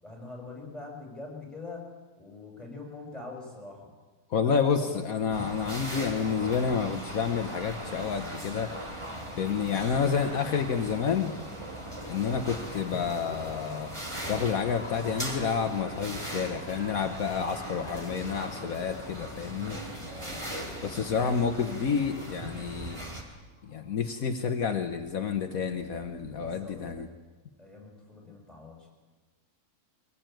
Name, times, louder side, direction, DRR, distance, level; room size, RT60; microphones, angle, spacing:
voice 1, 0.0-3.9 4.4-5.5 20.1-20.5 26.3-27.2 27.6-28.9, left 3 dB, ahead, 0 dB, 6.8 m, -44 dB
voice 2, 4.3-8.7 9.4-11.3 12.1-13.9 14.3-19.8 20.8-23.0 23.6-27.1, left 6 dB, 65° left, 6 dB, 1.5 m, -29 dB
sound 1, 5.3-23.2, right 1 dB, 20° right, 3.5 m, -39 dB
sound 2, 10.0-24.5, left 1 dB, 35° left, 2.9 m, -50 dB
23.5 x 19.5 x 9.2 m, 1.3 s
omnidirectional pair, 1.6 m